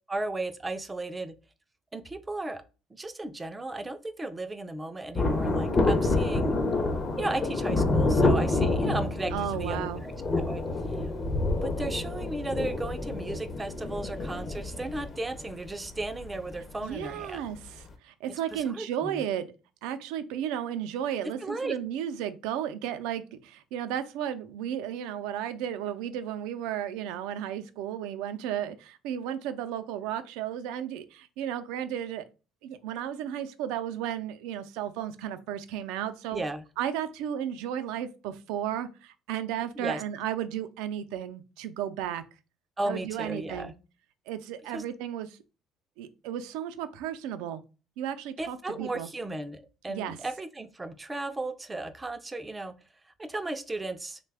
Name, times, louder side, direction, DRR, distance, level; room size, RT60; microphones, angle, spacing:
voice 1, 0.1-1.3 1.9-2.6 2.9-6.6 7.2-11.0 11.6-17.4 18.5-19.2 21.4-21.8 36.3-36.6 39.8-40.0 42.8-43.7 44.7-44.8 48.4-52.8 53.2-54.2, right 2 dB, 15° right, 8 dB, 0.3 m, -35 dB
Thunder, 5.2-17.2 17.4-17.5, left 2 dB, 35° left, 0.6 m, -28 dB
voice 2, 9.3-10.0 16.8-19.5 19.8-32.2 32.6-36.4 36.8-42.2 42.9-43.7 44.3-45.4 46.0-47.6 48.0-49.1 49.9-50.2, right 10 dB, 90° right, 10 dB, 0.4 m, -34 dB
3.2 x 2.1 x 3.3 m, 0.32 s
cardioid pair, 110°, 0 cm